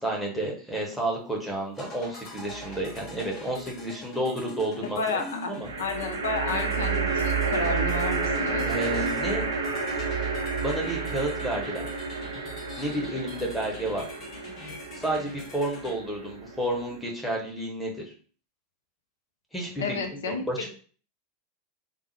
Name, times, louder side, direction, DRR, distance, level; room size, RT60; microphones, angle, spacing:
voice 1, 0.0-5.7 6.5-6.6 8.7-9.5 10.6-11.9 12.8-14.1 14.9-18.0 19.5-20.7, right 1 dB, 5° left, -1 dB, 1.0 m, -31 dB
sound 1, 1.7-15.9, left 2 dB, 35° left, 0.9 m, -44 dB
sound 2, 2.5-3.2 5.6-17.0, right 4 dB, 75° right, 0.5 m, -30 dB
voice 2, 4.8-5.5 5.8-8.7 19.8-20.7, left 4 dB, 65° left, 5 dB, 0.6 m, -31 dB
3.6 x 2.1 x 3.2 m, 0.42 s
figure-of-eight pair, 85°, 0 cm